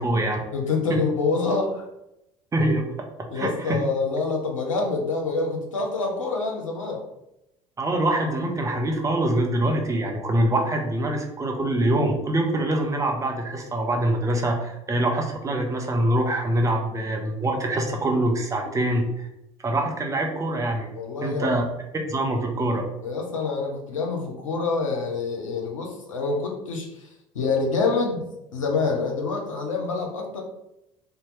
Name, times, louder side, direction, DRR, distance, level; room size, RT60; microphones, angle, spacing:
voice 1, 0.0-0.4 0.9-1.0 2.5-2.8 3.4-3.8 7.8-19.3 19.6-20.9 21.2-21.6 22.1-22.9, right 1 dB, 20° right, 2 dB, 0.6 m, -24 dB
voice 2, 0.5-1.9 3.3-7.1 18.6-19.0 20.9-21.6 23.0-27.1 27.3-30.4, left 4 dB, 85° left, 1 dB, 0.6 m, -26 dB
2.7 x 2.1 x 3.2 m, 0.86 s
figure-of-eight pair, 65°, 16 cm